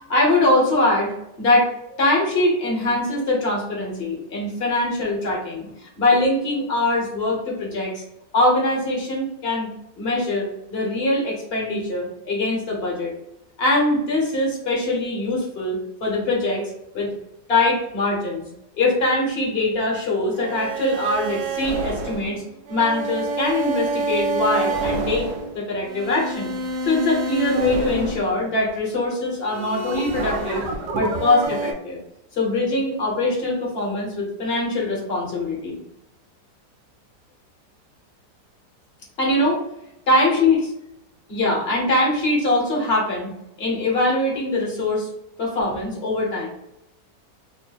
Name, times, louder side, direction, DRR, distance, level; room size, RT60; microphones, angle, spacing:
voice 1, 0.1-8.0 8.3-13.1 13.6-17.1 17.5-18.4 18.8-22.4 22.7-25.3 25.5-26.5 26.8-30.6 30.9-32.0 32.3-35.8 39.2-39.6 40.1-40.6 41.3-43.3 43.6-45.1 45.4-46.5, left 2 dB, 40° left, -2 dB, 1.1 m, -22 dB
sound 1, 20.3-28.9 29.4-31.7, right 2 dB, 75° right, 1.2 m, -27 dB
3.2 x 2.1 x 3.9 m, 0.85 s
omnidirectional pair, 1.9 m